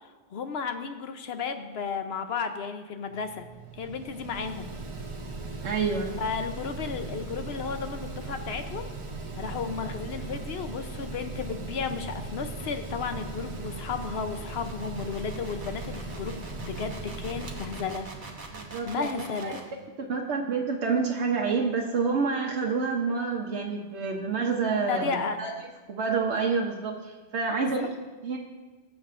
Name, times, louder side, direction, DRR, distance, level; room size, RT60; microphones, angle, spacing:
voice 1, 0.0-3.5 3.7-4.8 6.2-8.9 9.4-18.1 18.9-19.6 24.9-25.4 27.6-27.8, left 5 dB, 70° left, 7 dB, 1.0 m, -33 dB
Mechanical fan, 3.1-19.4, right 3 dB, 30° right, 0.7 m, -38 dB
voice 2, 5.6-6.2 18.5-19.6 20.1-25.5 25.9-27.9 28.2-28.4, right 5 dB, 85° right, 0 dB, 1.1 m, -28 dB
sound 1, 10.8-19.7, right 3 dB, 50° right, 1.4 m, -46 dB
18.5 x 7.3 x 2.5 m, 1.3 s
omnidirectional pair, 1.1 m